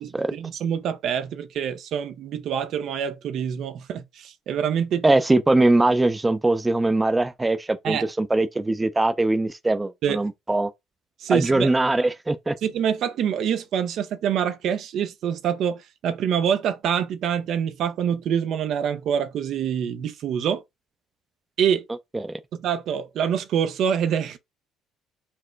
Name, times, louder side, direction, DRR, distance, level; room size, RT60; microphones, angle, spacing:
voice 1, 0.0-5.0 7.8-8.1 10.0-10.3 11.2-11.7 12.6-20.6 21.6-21.8 22.6-24.4, right 8 dB, 65° right, 0.6 m, -26 dB
voice 2, 5.0-10.7 11.3-12.6 22.1-22.4, right 2 dB, 15° right, 0.5 m, -21 dB
4.4 x 2.1 x 4.4 m
supercardioid pair, 80°, 0 cm